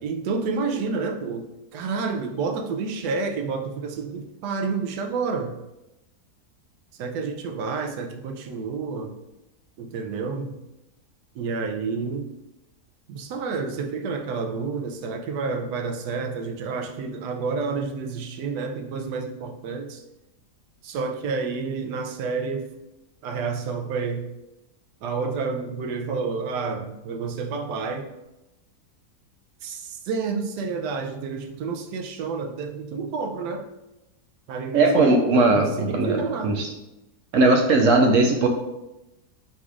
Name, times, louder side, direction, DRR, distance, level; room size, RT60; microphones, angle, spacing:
voice 1, 0.0-5.6 6.9-9.2 9.8-10.6 11.3-12.3 13.1-20.0 20.8-22.7 23.2-24.3 25.0-28.1 29.6-33.7 34.5-35.1 35.5-36.6, right 4 dB, 90° right, 4 dB, 1.2 m, -29 dB
voice 2, 34.7-36.7 37.3-38.5, right 2 dB, 70° right, 3 dB, 0.8 m, -19 dB
4.0 x 2.4 x 4.6 m, 0.94 s
omnidirectional pair, 1.7 m